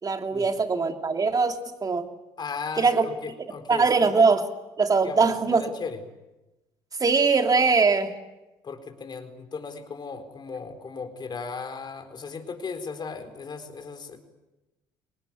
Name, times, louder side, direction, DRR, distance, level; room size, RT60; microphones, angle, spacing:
voice 1, 0.0-2.1 2.8-3.1 3.7-4.5 4.8-5.6 7.0-8.1, right 4 dB, 35° right, 5 dB, 3.0 m, -21 dB
voice 2, 2.4-4.1 5.0-6.0 8.6-14.2, left 5 dB, 45° left, 6 dB, 4.0 m, -36 dB
24.0 x 19.5 x 9.4 m, 1.0 s
supercardioid pair, 65°, 11 cm